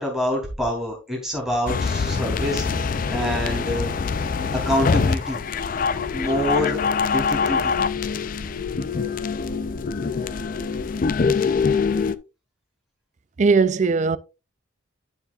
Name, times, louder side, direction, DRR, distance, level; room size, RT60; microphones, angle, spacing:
voice 1, 0.0-3.9 4.5-5.4 6.1-6.8 7.1-7.7, equal, ahead, 2.9 m, -26 dB
sound 1, 1.7-12.1, left 5 dB, 40° left, 0.4 m, -24 dB
voice 2, 13.4-14.2, right 4 dB, 35° right, 0.4 m, -18 dB
9.1 x 7.0 x 2.4 m
head